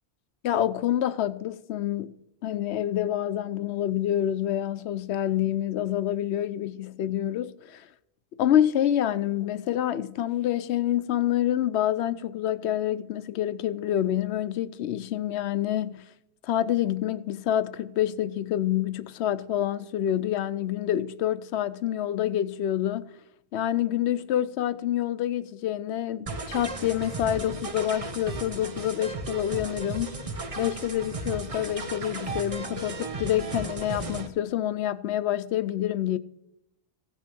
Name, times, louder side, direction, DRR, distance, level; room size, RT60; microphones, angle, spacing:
voice 1, 0.4-2.1 2.4-7.9 8.4-16.0 16.4-23.1 23.5-30.1 30.6-36.2, left 11 dB, 85° left, 0.9 m, -27 dB
sound 1, 26.3-34.3, right 2 dB, 35° right, 0.9 m, -35 dB
15.0 x 6.1 x 6.9 m
omnidirectional pair, 1.1 m